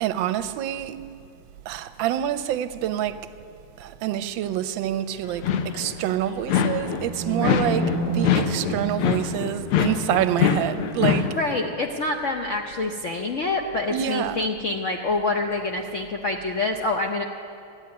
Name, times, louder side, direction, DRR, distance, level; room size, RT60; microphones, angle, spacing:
voice 1, 0.0-1.0 1.7-3.2 3.8-11.4 13.9-14.5, right 11 dB, 75° right, 1.2 m, -27 dB
sound 1, 5.3-6.0 6.5-7.1 7.4-11.4, left 8 dB, 85° left, 1.7 m, -24 dB
sound 2, 6.9-9.9, right 1 dB, 35° left, 4.5 m, -29 dB
voice 2, 7.4-7.7 11.4-17.2, left 2 dB, 70° left, 0.7 m, -26 dB
13.5 x 9.1 x 9.4 m
omnidirectional pair, 2.3 m